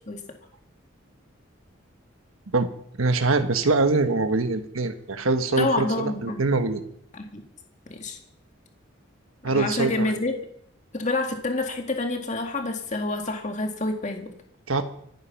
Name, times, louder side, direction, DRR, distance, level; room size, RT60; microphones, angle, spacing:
voice 1, 3.0-6.8 9.4-10.1 14.7-14.8, right 3 dB, 90° right, 8 dB, 1.3 m, -23 dB
voice 2, 5.6-6.4 7.1-7.4 7.9-8.2 9.5-10.3 10.9-14.3, left 2 dB, 35° left, 4 dB, 2.0 m, -28 dB
25.0 x 9.6 x 5.9 m, 0.70 s
head